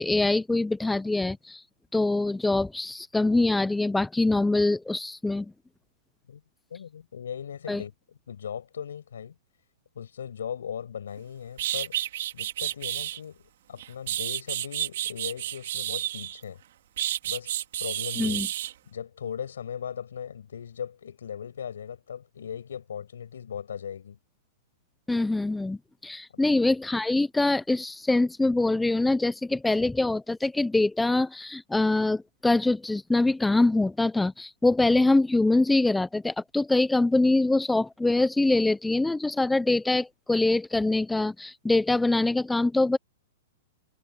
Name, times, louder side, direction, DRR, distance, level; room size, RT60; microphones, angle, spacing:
voice 1, 0.0-1.6 1.9-5.5 7.7-7.8 18.2-18.5 25.1-43.0, left 2 dB, 5° left, 0.5 m, -24 dB
voice 2, 6.7-9.3 9.9-12.0 12.3-16.6 17.2-18.4 18.9-24.2 26.3-26.4, left 8 dB, 90° left, 6.0 m, -38 dB
sound 1, 11.2-11.3 11.6-13.2 13.8-16.4 17.0-18.7, right 12 dB, 65° right, 3.7 m, -31 dB
hypercardioid pair, 145°, 0 cm